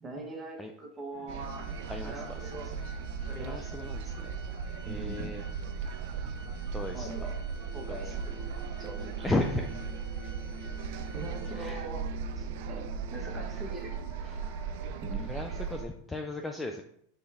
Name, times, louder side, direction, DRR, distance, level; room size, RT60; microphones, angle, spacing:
voice 1, 0.0-1.7 2.0-2.7 3.3-3.7 4.8-5.4 6.9-7.3 7.7-8.5 8.8-9.3 11.1-12.1 12.4-13.9 15.0-15.3, right 2 dB, 15° right, 0 dB, 1.2 m, -42 dB
sound 1, 1.1-15.9, left 3 dB, 70° left, 1.2 m, -49 dB
sound 2, 1.3-15.8, right 6 dB, 60° right, 0.3 m, -37 dB
Organ, 1.4-12.0, equal, 35° left, 1.1 m, -53 dB
voice 2, 1.9-2.7 3.3-4.3 4.8-5.4 6.7-7.3 7.9-8.1 9.2-9.8 11.6-11.8 14.2-14.4 15.1-16.8, left 2 dB, 10° left, 3 dB, 0.4 m, -35 dB
4.3 x 3.3 x 3.5 m, 0.70 s
hypercardioid pair, 120°, 0 cm